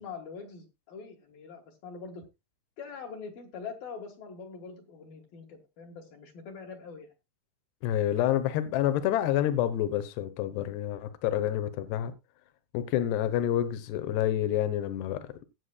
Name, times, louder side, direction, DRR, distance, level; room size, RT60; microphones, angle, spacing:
voice 1, 0.0-2.2 2.8-7.1, left 5 dB, 65° left, 3.1 m, -43 dB
voice 2, 7.8-12.1 12.7-15.3, left 11 dB, 80° left, 3.1 m, -28 dB
19.0 x 8.3 x 2.3 m
omnidirectional pair, 4.8 m